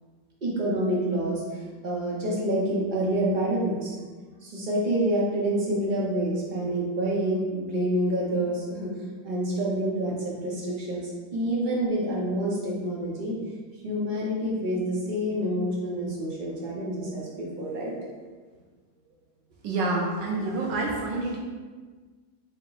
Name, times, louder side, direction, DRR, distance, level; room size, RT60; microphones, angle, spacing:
voice 1, 0.4-3.9 4.4-8.9 9.2-13.4 13.8-17.9 19.8-19.9, right 1 dB, 45° right, -5 dB, 0.6 m, -27 dB
voice 2, 19.6-21.4, right 2 dB, 85° right, -2 dB, 1.4 m, -28 dB
4.5 x 2.1 x 3.9 m, 1.4 s
omnidirectional pair, 1.9 m